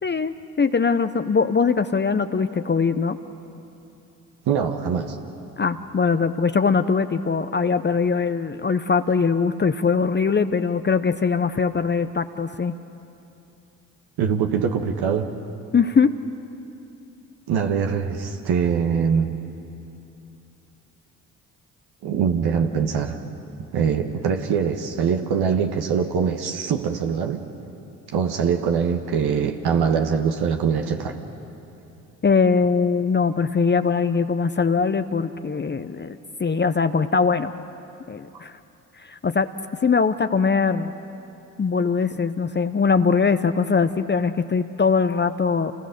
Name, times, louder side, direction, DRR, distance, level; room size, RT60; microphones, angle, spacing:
voice 1, 0.0-3.2 5.6-12.8 15.7-16.2 32.2-37.5 38.1-38.5 39.0-39.5 39.8-40.9 41.6-45.7, left 5 dB, 25° left, 10 dB, 0.8 m, -21 dB
voice 2, 4.5-5.2 14.2-15.3 17.5-19.4 22.0-23.2 23.7-27.5 28.1-31.1 38.3-38.4, right 6 dB, 65° right, 4 dB, 1.5 m, -23 dB
27.5 x 19.0 x 6.7 m, 2.8 s
hypercardioid pair, 45°, 42 cm